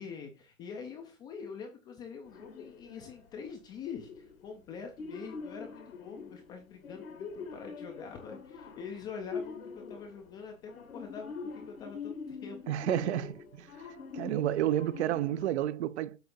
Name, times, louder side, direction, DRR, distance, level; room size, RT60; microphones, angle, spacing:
voice 1, 0.0-12.6, left 5 dB, 10° left, 0.3 m, -45 dB
sound 1, 2.2-3.4 3.9-10.4 10.7-15.5, left 5 dB, 80° left, 1.7 m, -44 dB
voice 2, 12.7-13.7 14.1-16.2, right 12 dB, 55° right, 0.5 m, -30 dB
7.8 x 2.8 x 5.3 m
hypercardioid pair, 130°, 41 cm